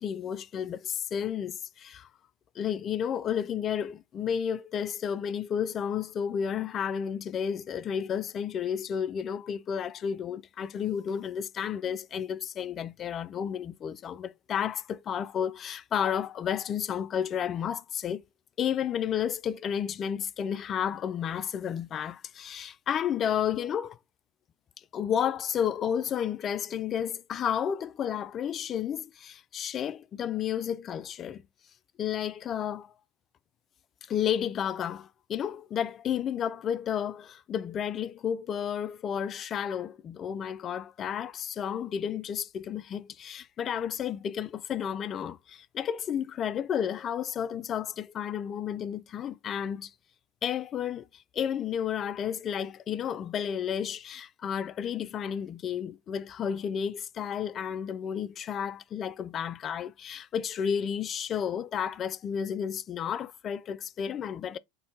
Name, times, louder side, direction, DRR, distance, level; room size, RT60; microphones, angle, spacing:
voice 1, 0.0-2.1 2.6-18.2 18.6-24.0 24.9-31.4 32.0-32.9 34.1-49.9 50.4-64.6, left 8 dB, 40° left, 0.3 m, -32 dB
3.9 x 2.2 x 3.9 m
hypercardioid pair, 90°, 0 cm